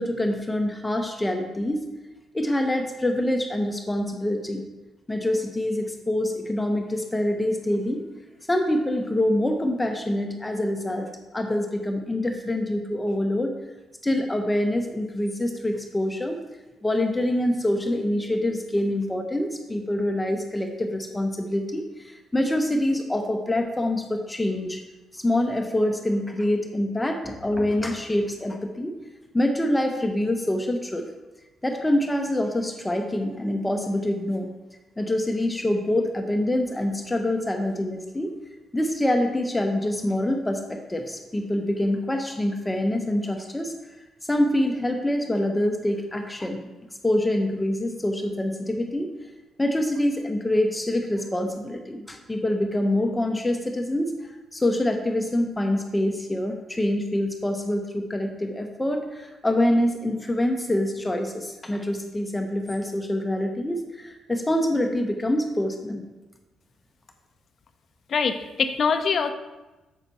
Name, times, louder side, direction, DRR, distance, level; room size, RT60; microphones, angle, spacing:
voice 1, 0.0-1.9 2.3-4.7 5.1-8.0 8.5-11.1 11.3-13.6 14.0-16.4 16.8-24.8 25.1-28.9 29.3-31.0 31.6-34.5 35.0-38.3 38.7-43.7 44.2-46.7 47.0-49.1 49.6-66.0, left 1 dB, 15° left, 4 dB, 0.7 m, -25 dB
voice 2, 68.1-69.3, left 5 dB, 50° left, 8 dB, 0.6 m, -23 dB
7.2 x 5.9 x 4.0 m, 1.1 s
cardioid pair, 90°, 0 cm